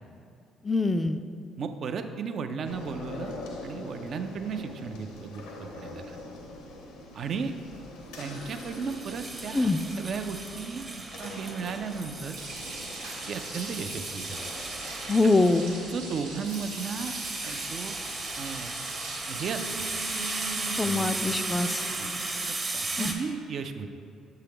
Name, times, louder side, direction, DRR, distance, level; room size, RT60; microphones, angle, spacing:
voice 1, 0.6-1.2 9.5-9.8 15.1-15.7 20.7-21.8 23.0-23.2, left 2 dB, 25° left, 10 dB, 0.3 m, -24 dB
voice 2, 1.6-3.3 3.6-6.2 7.1-7.5 8.2-9.7 10.0-10.8 11.2-12.4 13.3-14.4 15.7-17.1 17.4-18.0 18.4-19.9 20.8-21.1 21.9-22.1 22.7-23.9, right 5 dB, 55° right, 7 dB, 0.4 m, -35 dB
sound 1, 2.6-22.5, equal, 75° left, 0.6 m, -44 dB
sound 2, 8.3-23.1, right 3 dB, 30° right, 0.8 m, -36 dB
sound 3, 12.3-20.6, right 2 dB, 85° right, 0.8 m, -42 dB
6.7 x 4.5 x 3.5 m, 2.5 s
hypercardioid pair, 50°, 0 cm